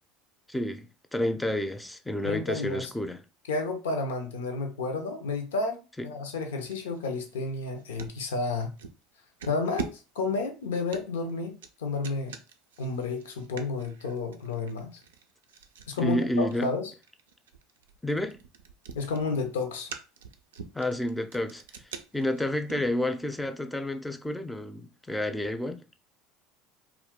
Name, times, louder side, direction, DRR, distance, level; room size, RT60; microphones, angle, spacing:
voice 1, 0.5-3.2 6.0-6.1 16.0-16.7 18.0-18.4 20.7-21.6 22.1-25.8, left 1 dB, 5° left, 0.5 m, -30 dB
voice 2, 2.2-2.9 3.5-5.8 6.0-8.7 9.5-12.4 12.8-15.0 15.9-16.9 18.9-19.9, left 3 dB, 85° left, 0.6 m, -31 dB
sound 1, 6.6-8.2 8.8-9.0 9.4-23.4, right 6 dB, 85° right, 0.3 m, -44 dB
2.3 x 2.2 x 3.6 m
hypercardioid pair, 80°, 0 cm